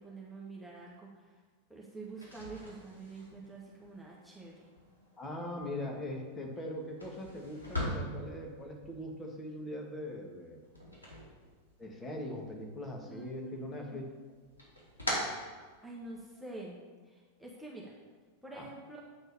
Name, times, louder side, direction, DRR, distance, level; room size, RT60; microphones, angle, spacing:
voice 1, 0.0-1.3 1.7-4.5 13.1-14.0 15.8-16.8 17.0-17.9 18.4-19.0, right 3 dB, ahead, -4 dB, 1.5 m, -47 dB
sound 1, 2.1-12.1 12.4-13.3 13.6-16.3, equal, 80° left, 3.0 m, -42 dB
voice 2, 5.2-10.6 11.8-14.0 18.5-18.7, left 1 dB, 15° left, 0 dB, 1.7 m, -41 dB
8.7 x 4.4 x 6.9 m, 1.5 s
figure-of-eight pair, 90°, 0 cm